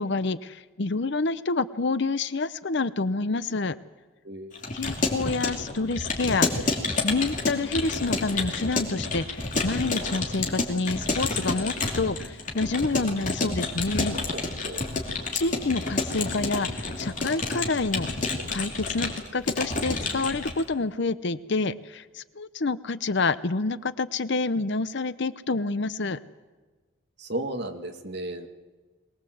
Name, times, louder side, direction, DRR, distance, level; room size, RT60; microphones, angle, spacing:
voice 1, 0.0-3.8 4.7-6.6 7.0-14.2 15.3-18.1 18.5-26.2, left 3 dB, 55° left, 14 dB, 0.7 m, -28 dB
voice 2, 4.2-4.6 14.3-14.9 27.2-28.5, right 1 dB, 50° right, 5 dB, 1.9 m, -34 dB
Keyboard (musical) / Computer keyboard, 4.5-20.6, left 3 dB, 35° left, 2.9 m, -29 dB
22.5 x 19.5 x 7.8 m, 1.3 s
head